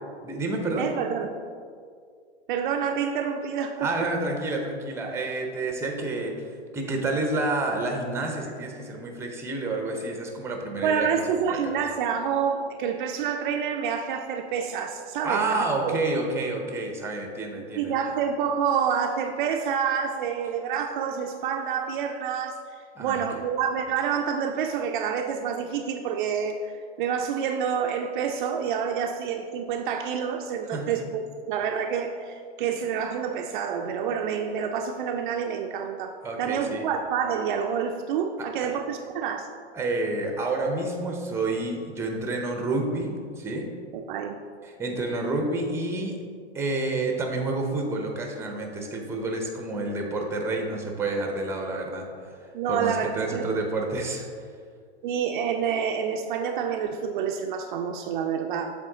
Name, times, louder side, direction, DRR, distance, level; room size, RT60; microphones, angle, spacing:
voice 1, 0.2-0.9 3.8-11.1 11.5-11.8 15.2-17.9 23.0-23.2 30.7-30.9 36.2-36.9 38.4-38.7 39.7-43.7 44.6-46.2 46.5-52.4 52.7-54.3, right 2 dB, 10° right, 2 dB, 0.7 m, -29 dB
voice 2, 0.8-1.4 2.5-4.1 10.8-15.6 15.8-16.0 17.8-39.5 43.9-44.4 52.5-53.4 55.0-58.7, right 7 dB, 50° right, 4 dB, 0.5 m, -28 dB
7.5 x 3.7 x 3.8 m, 2.1 s
hypercardioid pair, 120°, 33 cm